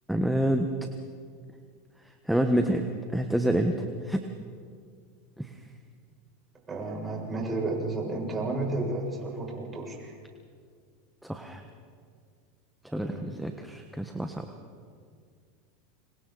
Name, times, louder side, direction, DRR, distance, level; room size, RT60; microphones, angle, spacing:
voice 1, 0.1-0.7 2.2-2.9 3.1-4.2 5.4-5.6 11.2-11.6 12.8-14.5, right 1 dB, ahead, 4 dB, 1.4 m, -27 dB
voice 2, 6.7-10.1 13.0-13.3, right 2 dB, 20° right, -2 dB, 6.9 m, -32 dB
28.5 x 25.5 x 4.2 m, 2.1 s
hypercardioid pair, 110°, 0 cm